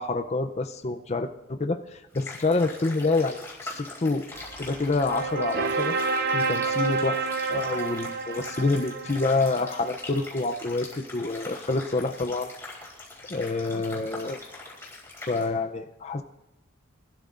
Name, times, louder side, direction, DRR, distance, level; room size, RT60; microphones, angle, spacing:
voice 1, 0.0-4.3 4.6-6.0 6.3-12.5 13.3-14.4 15.3-16.2, left 3 dB, 30° left, 6 dB, 0.5 m, -27 dB
sound 1, 2.1-15.5, left 2 dB, 10° left, 3.7 m, -42 dB
sound 2, 4.3-10.3, right 4 dB, 45° right, 0.7 m, -29 dB
23.5 x 13.0 x 2.5 m, 0.93 s
head